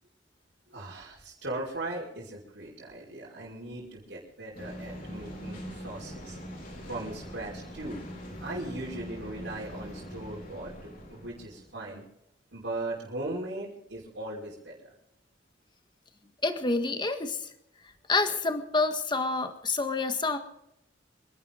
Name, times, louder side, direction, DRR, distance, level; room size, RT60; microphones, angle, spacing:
voice 1, 0.7-6.4 6.9-8.0 8.4-12.0 12.5-14.9, right 2 dB, 75° right, -5 dB, 5.5 m, -38 dB
sound 1, 4.5-11.8, equal, 50° left, 4.8 m, -42 dB
voice 2, 16.4-17.4 18.1-20.4, left 3 dB, 25° left, 7 dB, 1.6 m, -28 dB
28.0 x 11.5 x 3.9 m, 0.80 s
head